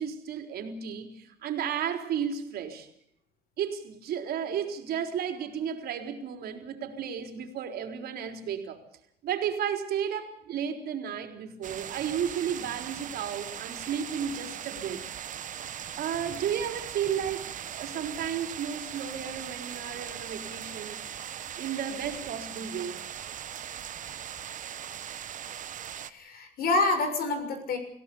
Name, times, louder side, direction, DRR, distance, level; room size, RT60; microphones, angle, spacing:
voice 1, 0.0-2.9 3.6-8.8 9.2-15.0 16.0-21.0 21.6-23.0, right 8 dB, 65° right, 4.0 m, -33 dB
sound 1, 11.6-26.1, right 9 dB, 50° right, 1.3 m, -39 dB
voice 2, 26.0-27.8, left 3 dB, 65° left, 6.6 m, -27 dB
26.5 x 16.5 x 7.0 m
cardioid pair, 110°, 17 cm